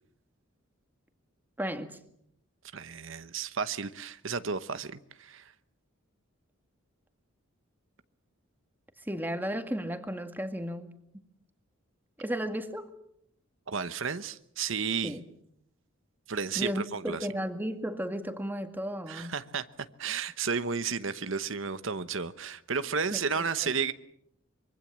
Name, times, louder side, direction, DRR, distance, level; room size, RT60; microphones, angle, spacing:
voice 1, 1.6-2.0 9.1-10.9 12.2-12.9 15.0-15.2 16.6-19.4 23.1-23.2 23.6-23.7, equal, 10° right, 1.9 m, -34 dB
voice 2, 2.7-5.5 13.7-15.1 16.3-17.3 19.1-19.7 20.0-23.9, right 5 dB, 65° right, 1.0 m, -32 dB
25.0 x 23.5 x 7.5 m
head